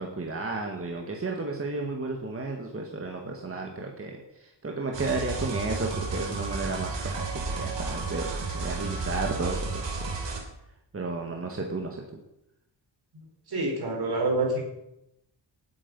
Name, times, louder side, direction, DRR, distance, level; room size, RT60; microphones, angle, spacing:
voice 1, 0.0-10.4 10.9-12.0, right 3 dB, 30° right, 1 dB, 1.8 m, -33 dB
sound 1, 4.9-10.4, right 4 dB, 90° right, 3.3 m, -32 dB
voice 2, 13.5-14.7, right 2 dB, 60° right, 1 dB, 4.6 m, -27 dB
18.5 x 8.9 x 5.5 m, 0.86 s
wide cardioid pair, 120°, 42 cm